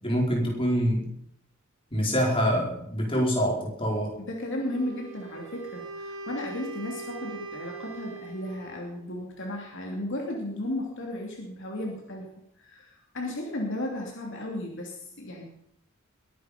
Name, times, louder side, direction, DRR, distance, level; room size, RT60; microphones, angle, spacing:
voice 1, 0.0-1.1 1.9-4.1, equal, 25° left, -1 dB, 4.9 m, -25 dB
voice 2, 4.2-12.3 12.6-15.4, left 1 dB, 60° left, 0 dB, 2.9 m, -34 dB
Wind instrument woodwind instrument, 4.6-8.9, right 3 dB, 70° right, 3.3 m, -41 dB
21.5 x 10.5 x 5.3 m, 0.72 s
head